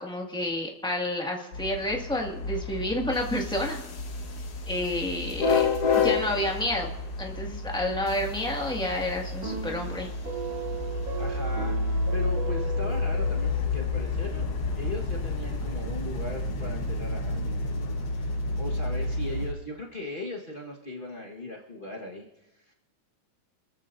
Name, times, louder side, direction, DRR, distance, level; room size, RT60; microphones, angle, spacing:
voice 1, 0.0-3.8 4.7-5.6 5.9-6.9 7.2-10.1, left 1 dB, ahead, -1 dB, 1.2 m, -30 dB
sound 1, 1.5-19.5, left 3 dB, 60° left, 1.0 m, -30 dB
sound 2, 9.4-13.9, right 5 dB, 75° right, 3.5 m, -37 dB
voice 2, 11.2-14.5 14.8-22.7, left 1 dB, 75° left, -2 dB, 0.4 m, -39 dB
25.5 x 14.5 x 2.7 m, 1.0 s
omnidirectional pair, 3.6 m